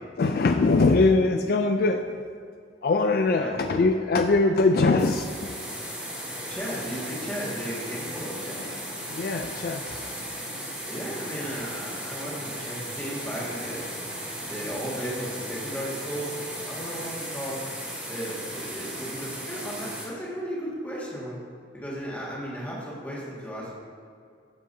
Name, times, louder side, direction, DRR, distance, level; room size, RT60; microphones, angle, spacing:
voice 1, 0.2-2.2 2.8-5.6 9.1-10.0, left 3 dB, 50° left, 6 dB, 0.3 m, -22 dB
voice 2, 3.3-3.8 6.5-8.7 10.9-13.9 14.4-17.6 18.1-21.4 21.7-23.7, equal, 10° left, -6 dB, 1.9 m, -35 dB
sound 1, 5.0-20.0, equal, 10° right, 2.0 m, -36 dB
13.0 x 7.4 x 2.8 m, 2.3 s
head